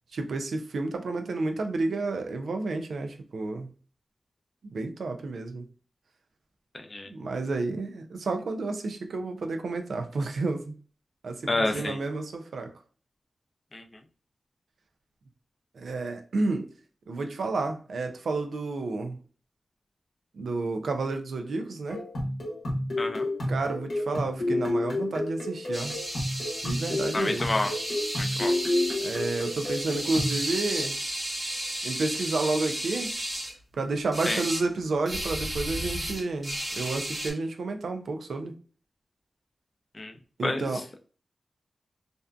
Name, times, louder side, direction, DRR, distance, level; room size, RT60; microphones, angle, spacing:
voice 1, 0.1-3.7 4.6-5.7 7.0-10.8 11.2-12.7 15.7-16.7 17.1-19.2 20.3-22.1 23.5-26.0 26.6-27.5 29.0-31.0 31.8-33.1 33.8-38.5 40.4-40.8, right 3 dB, 85° right, 0.3 m, -31 dB
voice 2, 11.5-12.0 13.7-13.8 23.0-23.3 27.1-27.7 28.2-28.5 34.3-34.4 39.9-40.1 40.4-40.7, left 2 dB, 40° left, 0.5 m, -28 dB
sound 1, 21.9-30.4, left 1 dB, 85° left, 0.8 m, -30 dB
sound 2, 25.7-33.5 34.1-34.6 35.1-37.3, right 1 dB, 50° right, 1.1 m, -33 dB
2.5 x 2.2 x 2.4 m
cardioid pair, 50°, 0 cm